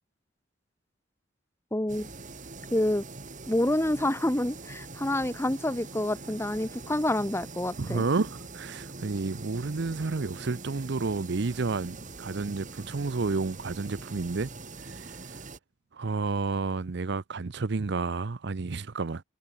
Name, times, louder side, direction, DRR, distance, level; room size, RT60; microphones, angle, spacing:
voice 1, 1.7-2.1 2.7-3.0 3.5-8.0, left 1 dB, 15° left, 1.1 m, -28 dB
sound 1, 1.9-15.6, right 3 dB, 40° right, 3.7 m, -43 dB
voice 2, 7.8-14.5 14.8-15.4 15.9-19.2, right 3 dB, 60° right, 0.7 m, -31 dB
head